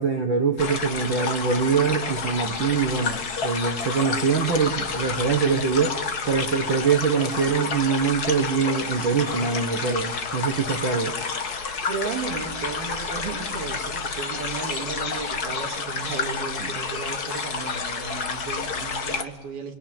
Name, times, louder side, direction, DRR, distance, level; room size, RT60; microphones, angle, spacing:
voice 1, 0.0-6.0 6.3-11.2 11.4-11.5, right 5 dB, 55° right, 5 dB, 1.4 m, -24 dB
sound 1, 0.6-19.2, left 5 dB, 45° left, 1.2 m, -30 dB
voice 2, 11.9-19.8, right 5 dB, 90° right, 2 dB, 4.7 m, -34 dB
28.5 x 22.5 x 9.1 m, 1.1 s
omnidirectional pair, 4.2 m